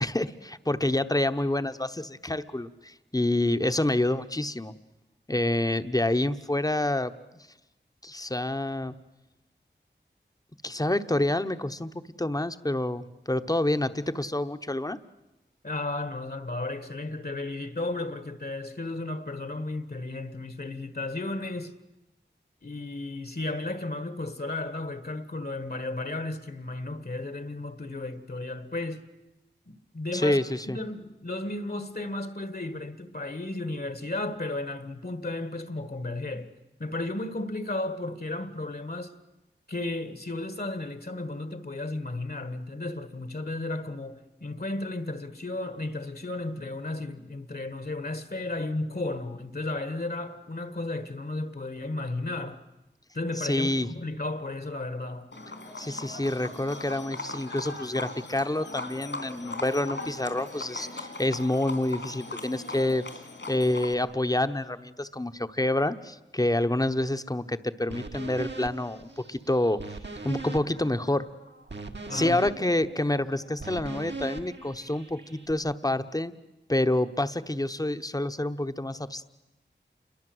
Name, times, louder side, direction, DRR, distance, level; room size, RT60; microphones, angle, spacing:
voice 1, 0.0-4.7 5.3-7.1 8.0-8.9 10.6-15.0 30.1-30.8 53.3-53.9 55.8-63.1 63.5-69.8 70.2-71.3 72.1-76.3 76.7-79.2, left 1 dB, 20° left, 1.0 m, -28 dB
voice 2, 15.6-21.8 22.6-29.1 29.7-30.4 30.7-36.5 36.8-39.1 39.7-52.6 53.1-55.3 72.1-72.4, left 2 dB, 55° left, 1.6 m, -34 dB
Livestock farm animals working animals, 55.3-63.9, left 3 dB, 75° left, 3.6 m, -39 dB
sound 1, 67.9-75.5, right 3 dB, 70° right, 1.7 m, -40 dB
28.5 x 22.5 x 7.9 m
wide cardioid pair, 55°, 19 cm